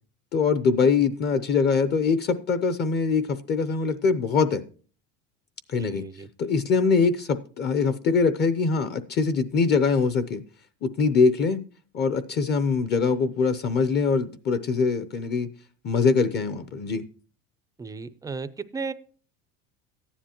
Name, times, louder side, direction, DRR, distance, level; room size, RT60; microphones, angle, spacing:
voice 1, 0.3-4.6 5.7-6.0 6.4-10.4 10.8-11.6 11.9-15.5 15.8-17.0, left 5 dB, 30° left, 0.7 m, -23 dB
voice 2, 5.7-6.3 17.8-18.9, right 4 dB, 10° right, 0.4 m, -35 dB
14.0 x 10.0 x 2.9 m
cardioid pair, 140°, 33 cm